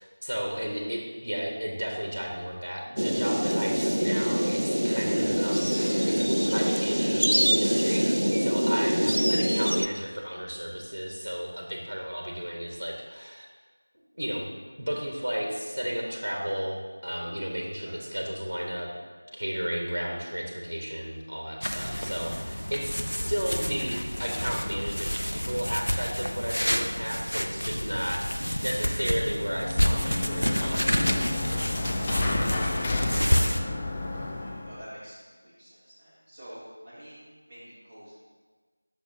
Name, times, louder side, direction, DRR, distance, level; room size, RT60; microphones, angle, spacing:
voice 1, 0.0-13.4 14.1-14.5 14.8-18.9 19.3-31.3 32.0-32.8, equal, 55° right, 0 dB, 1.3 m, -33 dB
sound 1, 3.0-9.9, equal, 75° right, 0.4 m, -24 dB
sound 2, 21.6-33.6, equal, 75° left, 0.6 m, -29 dB
sound 3, 29.3-34.8, left 2 dB, 15° left, 0.3 m, -31 dB
voice 2, 34.1-37.2 37.5-38.1, equal, 10° right, -14 dB, 1.8 m, -47 dB
8.4 x 6.6 x 2.8 m, 1.4 s
figure-of-eight pair, 170°, 0 cm